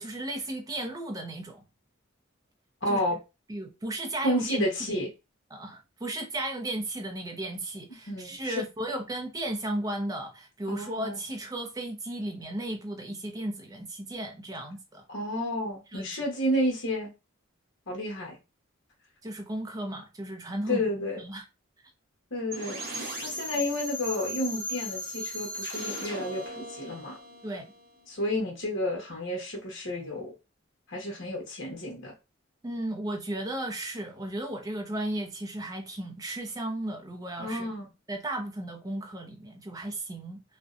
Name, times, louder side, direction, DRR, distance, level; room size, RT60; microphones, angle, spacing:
voice 1, 0.0-1.6 2.9-3.0 3.5-5.0 5.5-15.0 15.9-16.1 19.2-21.4 27.4-27.6 32.6-37.7 38.1-40.4, right 1 dB, 20° right, 0.4 m, -35 dB
voice 2, 2.8-3.2 4.2-5.1 8.1-8.6 10.7-11.2 15.1-17.1 17.9-18.4 20.7-21.2 22.3-22.8 23.2-27.2 28.1-30.3 30.9-32.1 37.4-37.9, left 1 dB, 70° left, 0.9 m, -31 dB
sound 1, 22.5-28.3, equal, 55° right, 0.8 m, -37 dB
2.5 x 2.1 x 2.4 m
head